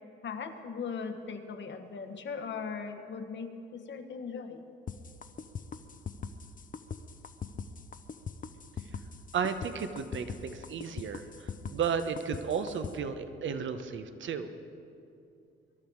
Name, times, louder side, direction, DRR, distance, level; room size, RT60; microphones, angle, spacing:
voice 1, 0.2-4.6, left 5 dB, 60° left, 7 dB, 1.3 m, -39 dB
sound 1, 4.9-12.9, left 6 dB, 40° left, 0.8 m, -40 dB
voice 2, 9.3-14.5, right 6 dB, 65° right, 9 dB, 1.0 m, -34 dB
21.5 x 11.5 x 4.7 m, 2.6 s
cardioid pair, 90°, 21 cm